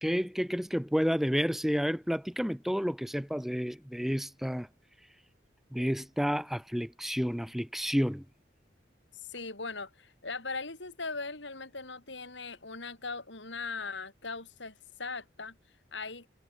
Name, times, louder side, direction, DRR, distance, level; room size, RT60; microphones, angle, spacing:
voice 1, 0.0-4.7 5.7-8.2, equal, ahead, 1.3 m, -30 dB
voice 2, 9.3-15.6 15.9-16.3, left 4 dB, 75° left, 5.6 m, -39 dB
head